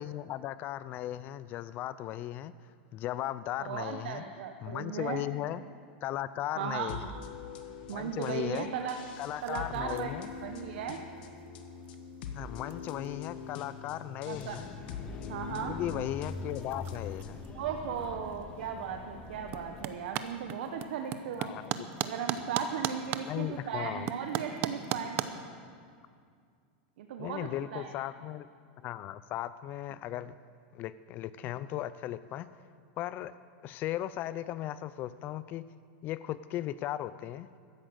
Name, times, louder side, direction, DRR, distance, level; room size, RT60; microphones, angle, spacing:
voice 1, 0.0-2.5 2.9-4.2 4.6-5.6 6.0-7.1 7.9-8.7 9.2-10.3 12.3-14.7 15.5-17.4 21.4-21.7 23.2-24.1 27.2-28.5 28.8-30.3 30.7-32.5 33.0-33.3 33.6-35.7 36.0-37.5, left 13 dB, 35° left, 15 dB, 0.4 m, -37 dB
voice 2, 3.6-5.2 6.6-7.0 7.9-9.0 9.4-10.1 10.4-11.0 14.3-14.6 15.3-15.8 17.5-21.5 22.0-25.2 27.0-27.9, right 7 dB, 70° right, 5 dB, 1.1 m, -36 dB
sound 1, 6.9-17.5, left 6 dB, 65° left, 1.5 m, -44 dB
sound 2, 8.8-25.3, right 10 dB, 40° right, 0.7 m, -41 dB
sound 3, 14.3-20.0, left 4 dB, 20° left, 0.9 m, -43 dB
13.0 x 10.5 x 7.8 m, 2.2 s
supercardioid pair, 140°, 5 cm